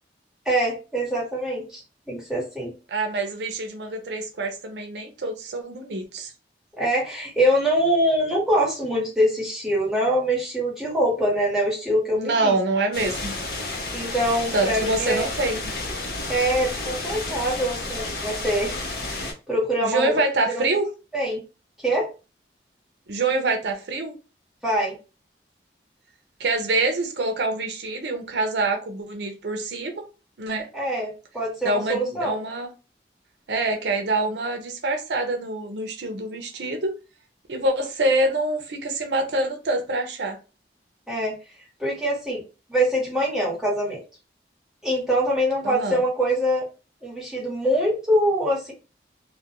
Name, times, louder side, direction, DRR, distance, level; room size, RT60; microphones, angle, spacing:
voice 1, 0.4-1.8 2.1-2.7 6.8-12.5 13.9-15.3 16.3-18.8 19.0-20.1 20.5-20.7 21.1-21.4 21.8-22.1 24.6-24.9 30.7-32.4 41.1-41.4 41.8-42.4 42.7-44.0 44.8-46.7 47.0-48.7, equal, ahead, -5 dB, 1.1 m, -24 dB
voice 2, 2.9-6.3 12.1-13.3 14.5-15.7 19.8-20.9 23.1-24.1 26.4-30.0 30.4-30.7 31.6-32.7 33.5-37.0 37.5-40.4 45.6-46.0, right 2 dB, 75° right, 4 dB, 0.5 m, -25 dB
sound 1, 12.9-19.3, left 2 dB, 60° left, 0.7 m, -31 dB
2.4 x 2.1 x 2.8 m, 0.31 s
head